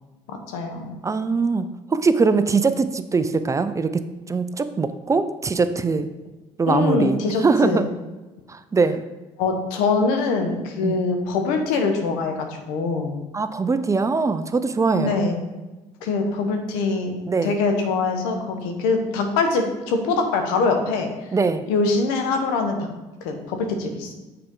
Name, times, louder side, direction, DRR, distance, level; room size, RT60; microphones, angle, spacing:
voice 1, 0.3-1.0 6.7-7.8 9.4-13.1 14.9-15.4 16.0-17.1 17.4-21.1 21.7-22.9 23.2-24.1, left 4 dB, 85° left, 4 dB, 0.9 m, -23 dB
voice 2, 1.0-1.6 1.9-4.0 4.3-6.1 6.6-7.9 8.5-9.0 10.5-11.0 13.3-15.2 17.3-17.6 21.3-21.6, right 4 dB, 20° right, 11 dB, 0.4 m, -22 dB
6.6 x 4.4 x 3.7 m, 1.1 s
supercardioid pair, 75°, 14 cm